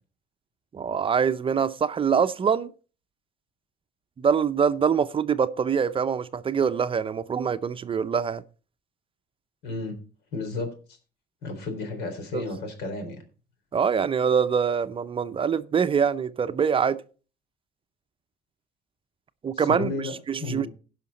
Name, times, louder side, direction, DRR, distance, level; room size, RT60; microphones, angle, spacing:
voice 1, 0.7-2.7 4.2-8.4 12.3-12.4 13.7-17.0 19.4-19.9 20.3-20.7, right 7 dB, 30° right, 0.6 m, -24 dB
voice 2, 9.6-10.0 10.3-11.0 11.4-13.2 19.5-20.7, left 3 dB, 80° left, 3.8 m, -33 dB
16.5 x 5.8 x 4.1 m
cardioid pair, 110°, 17 cm